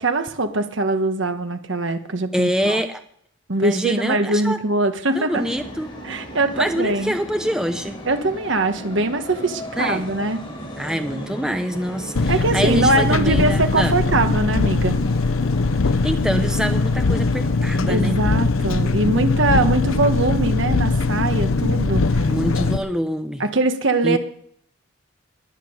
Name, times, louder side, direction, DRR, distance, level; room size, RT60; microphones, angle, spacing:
voice 1, 0.0-2.8 3.5-5.5 6.0-7.2 8.0-10.4 12.3-15.0 17.9-22.3 23.4-24.2, right 2 dB, 65° right, 8 dB, 1.4 m, -22 dB
voice 2, 2.3-3.0 3.6-4.6 5.1-5.9 6.5-8.0 9.8-10.0 10.8-14.0 15.8-18.2 22.2-23.4 24.0-24.2, equal, 5° right, 7 dB, 0.8 m, -25 dB
sound 1, 5.3-17.6, equal, 20° left, 5.1 m, -37 dB
Engine, 12.2-22.8, left 3 dB, 85° left, 0.7 m, -21 dB
21.0 x 7.6 x 6.7 m, 0.65 s
head